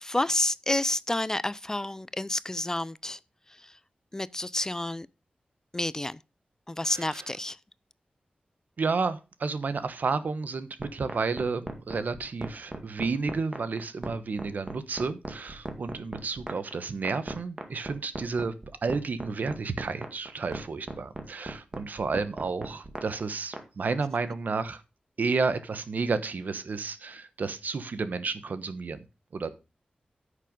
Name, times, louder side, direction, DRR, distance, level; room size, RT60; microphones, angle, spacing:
voice 1, 0.0-3.2 3.5-3.7 4.1-5.1 5.7-6.2 6.7-7.6, left 1 dB, 20° left, 0.4 m, -29 dB
voice 2, 6.9-7.2 8.8-18.5 18.8-24.8 25.2-29.0 29.3-29.5, right 4 dB, 70° right, 1.1 m, -31 dB
sound 1, 10.8-23.6, right 2 dB, 30° right, 2.0 m, -37 dB
10.0 x 6.7 x 5.3 m
wide cardioid pair, 80°, 3 cm